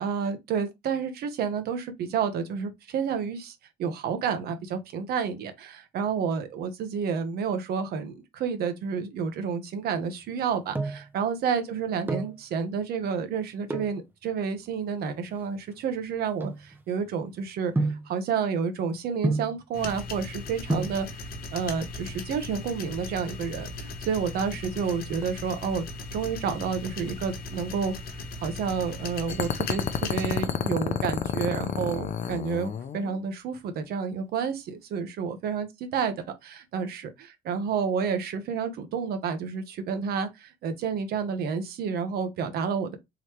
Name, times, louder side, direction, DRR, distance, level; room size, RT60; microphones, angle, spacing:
voice 1, 0.0-21.1 21.5-25.8 26.1-27.9 28.4-35.7 35.9-36.1 36.4-37.1 37.5-43.0, right 6 dB, 70° right, 1.0 m, -30 dB
sound 1, 10.3-11.1 11.9-12.4 13.6-14.0 14.7-17.1 17.8-18.1 19.2-19.6 20.4-20.5 20.7-21.0 22.2-22.7 23.0-23.1 23.3-23.5 23.8-24.2 24.5-25.6 26.0-26.4 26.8-28.0 28.2-28.3, right 2 dB, 10° right, 0.7 m, -31 dB
sound 2, 19.7-30.4, left 2 dB, 60° left, 1.0 m, -38 dB
sound 3, 29.3-33.1, left 8 dB, 45° left, 0.5 m, -30 dB
3.9 x 3.2 x 3.0 m
cardioid pair, 110°, 17 cm